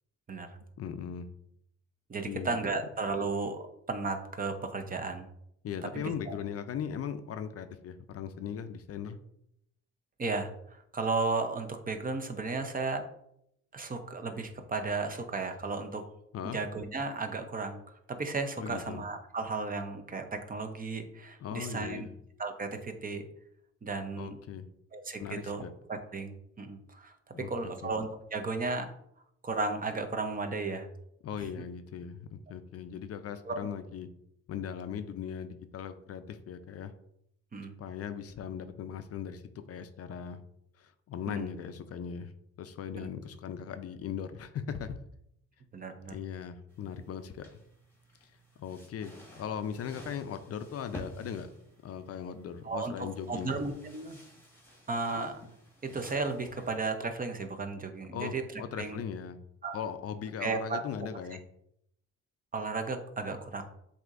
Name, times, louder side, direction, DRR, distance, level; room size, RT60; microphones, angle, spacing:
voice 1, 0.8-1.3 2.2-2.8 5.6-9.2 16.3-16.6 18.6-19.0 21.4-22.1 24.2-24.7 25.2-25.7 27.3-27.9 31.2-34.1 34.5-36.9 37.8-39.4 39.7-40.4 40.8-42.3 42.6-45.0 46.1-47.6 48.2-48.3 48.6-51.5 51.8-53.6 58.1-59.4 59.7-61.4, left 8 dB, 55° left, 10 dB, 0.5 m, -39 dB
voice 2, 2.1-5.3 5.9-6.4 10.2-13.0 13.7-16.1 16.5-17.8 18.1-22.1 22.4-23.2 23.8-24.4 24.9-25.6 25.9-28.9 29.4-30.9 31.4-31.5 33.5-33.6 37.5-37.7 41.3-41.5 42.9-43.1 45.7-46.2 52.6-54.2 54.9-55.4 55.8-59.0 59.6-59.8 60.4-60.8 62.5-63.6, right 3 dB, 30° right, 6 dB, 0.7 m, -34 dB
sound 1, 46.7-57.1, equal, 10° left, 1.3 m, -52 dB
7.7 x 2.7 x 2.5 m, 0.75 s
cardioid pair, 90°, 30 cm